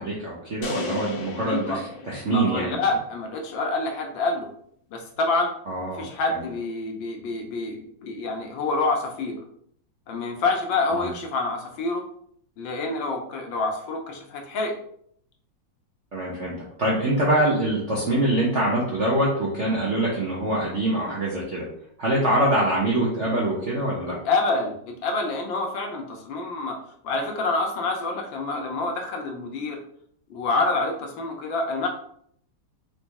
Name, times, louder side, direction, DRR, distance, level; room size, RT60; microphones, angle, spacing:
voice 1, 0.0-2.8 5.7-6.1 10.9-11.1 16.1-16.5 16.8-21.7 22.0-24.2, right 1 dB, 60° right, -4 dB, 0.7 m, -24 dB
sound 1, 0.6-2.9, left 5 dB, 85° left, 1.6 m, -36 dB
voice 2, 1.5-1.8 2.3-4.5 4.9-5.5 5.9-9.4 10.1-12.0 12.6-14.7 24.2-24.8 25.0-26.8 27.0-29.8 30.3-31.9, left 3 dB, 70° left, 3 dB, 1.4 m, -27 dB
4.0 x 3.0 x 3.5 m, 0.67 s
omnidirectional pair, 2.3 m